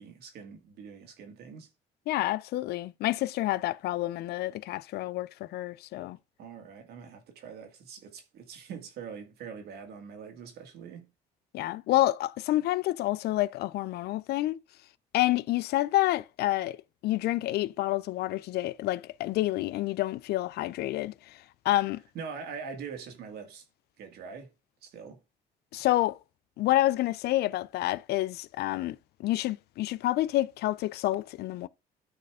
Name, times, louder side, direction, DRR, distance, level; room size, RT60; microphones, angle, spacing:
voice 1, 0.0-1.7 6.4-11.1 22.1-23.6 24.0-24.5 24.8-25.2, right 6 dB, 70° right, 2.2 m, -43 dB
voice 2, 2.1-6.2 11.5-14.6 15.1-16.8 17.0-21.4 21.6-22.0 25.7-26.2 26.6-31.7, left 16 dB, 75° left, 0.5 m, -28 dB
11.0 x 4.2 x 4.9 m
cardioid pair, 110°, 17 cm